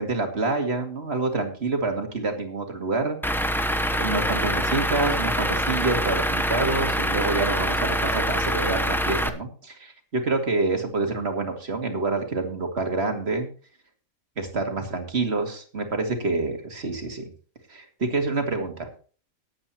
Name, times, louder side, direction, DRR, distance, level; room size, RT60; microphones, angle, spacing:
voice 1, 0.0-3.2 4.0-13.5 14.4-17.3 17.7-18.9, right 3 dB, 45° right, 4 dB, 2.6 m, -27 dB
Truck / Idling, 3.2-9.3, equal, ahead, 0.5 m, -25 dB
19.0 x 8.8 x 2.9 m, 0.39 s
omnidirectional pair, 1.5 m